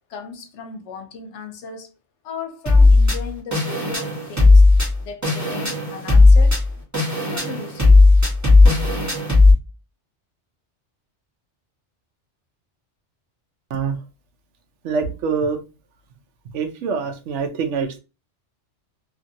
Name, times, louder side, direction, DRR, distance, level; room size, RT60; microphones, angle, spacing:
voice 1, 0.1-1.9 2.2-4.6 5.0-6.6 7.3-8.0, left 5 dB, 80° left, 0.9 m, -36 dB
sound 1, 2.7-9.5, left 3 dB, 15° right, 1.1 m, -14 dB
voice 2, 14.8-15.6 16.5-18.0, right 5 dB, 80° right, 0.9 m, -24 dB
2.8 x 2.5 x 2.6 m
omnidirectional pair, 1.2 m